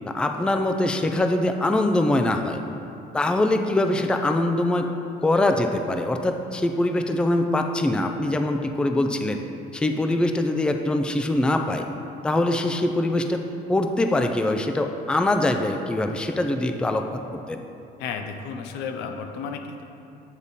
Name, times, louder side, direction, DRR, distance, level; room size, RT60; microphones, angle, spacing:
voice 1, 0.1-2.6 3.1-4.9 5.2-9.4 9.7-11.9 12.2-13.4 13.7-17.6, left 1 dB, 5° left, 6 dB, 0.3 m, -23 dB
voice 2, 18.0-19.8, left 6 dB, 90° left, 5 dB, 0.5 m, -33 dB
8.2 x 3.5 x 4.1 m, 2.7 s
cardioid pair, 110°, 17 cm